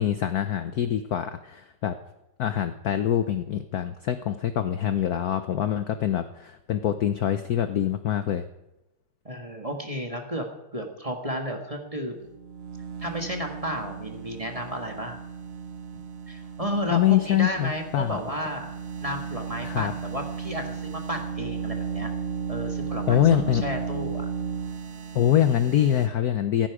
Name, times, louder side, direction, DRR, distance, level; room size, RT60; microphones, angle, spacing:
voice 1, 0.0-1.9 2.4-8.4 16.9-18.2 19.6-19.9 23.1-23.6 25.1-26.7, left 10 dB, 65° left, 10 dB, 0.9 m, -24 dB
voice 2, 9.2-10.5 10.7-12.2 13.0-15.2 16.3-22.1 22.5-24.3, equal, 20° right, 3 dB, 1.4 m, -33 dB
sound 1, 12.2-26.1, right 6 dB, 65° right, 0.6 m, -35 dB
15.5 x 14.5 x 4.9 m, 0.96 s
omnidirectional pair, 2.3 m